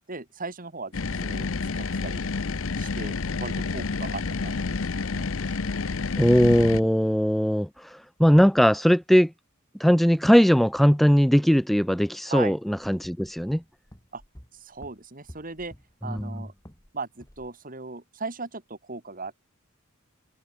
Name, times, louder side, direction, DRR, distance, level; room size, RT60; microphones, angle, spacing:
voice 1, 0.0-1.5 1.7-2.2 2.8-5.3 12.3-12.6 14.1-14.2 14.5-15.7 16.0-16.5 16.9-19.4, right 3 dB, 40° right, 2.8 m, -38 dB
sound 1, 0.9-6.8, left 4 dB, 70° left, 0.8 m, -29 dB
voice 2, 6.2-7.9 8.2-9.3 9.8-13.6 16.1-16.3, equal, ahead, 0.3 m, -19 dB
sound 2, 12.8-16.9 17.2-17.5, equal, 15° left, 3.6 m, -50 dB
head